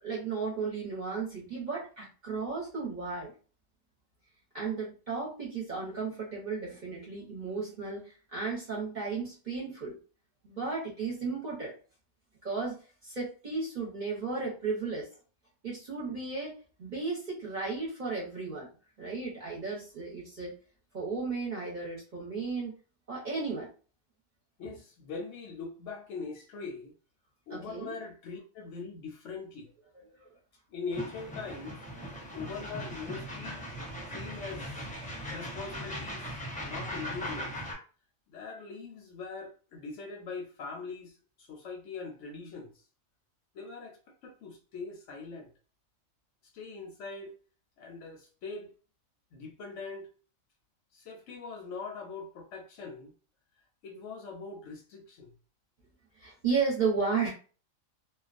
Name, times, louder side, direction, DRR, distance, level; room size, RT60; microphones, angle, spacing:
voice 1, 0.0-3.3 4.5-10.0 10.4-11.7 12.4-15.1 15.6-18.7 19.0-20.6 20.9-22.7 23.1-23.7 27.5-27.9 30.2-30.4 56.2-57.3, right 4 dB, 40° right, 0.8 m, -34 dB
voice 2, 24.6-26.9 27.5-29.7 30.7-31.8 32.3-33.7 34.1-34.7 35.3-36.3 36.6-37.5 38.3-41.1 41.4-42.7 43.5-45.5 46.5-47.3 47.8-48.7 49.3-50.1 50.9-53.1 53.8-55.3, left 4 dB, 70° left, 0.8 m, -42 dB
sound 1, 30.9-37.7, equal, 10° left, 0.4 m, -39 dB
2.3 x 2.2 x 2.4 m
omnidirectional pair, 1.4 m